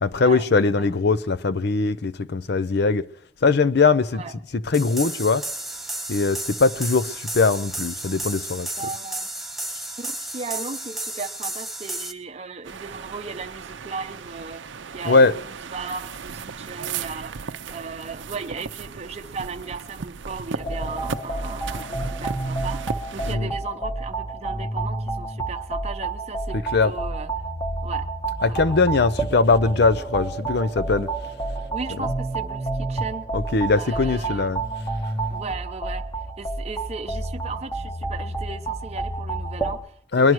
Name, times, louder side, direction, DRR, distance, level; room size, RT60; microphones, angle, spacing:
voice 1, 0.0-3.1 3.4-5.4 6.1-8.9 15.0-15.4 23.3-23.6 26.5-27.0 28.4-31.1 32.0-32.1 33.3-34.6 40.1-40.3, left 4 dB, 55° left, 0.6 m, -21 dB
sound 1, 4.7-12.1, right 1 dB, ahead, 0.7 m, -33 dB
voice 2, 8.8-9.3 10.0-14.6 14.9-17.4 17.7-27.3 27.8-28.1 28.5-28.7 31.7-33.3 33.7-34.5 35.3-36.1 36.4-40.3, right 4 dB, 35° right, 0.7 m, -36 dB
sound 2, 12.6-23.4, right 5 dB, 70° right, 0.6 m, -36 dB
sound 3, 20.6-39.8, right 2 dB, 20° left, 1.5 m, -29 dB
21.0 x 11.0 x 4.6 m
head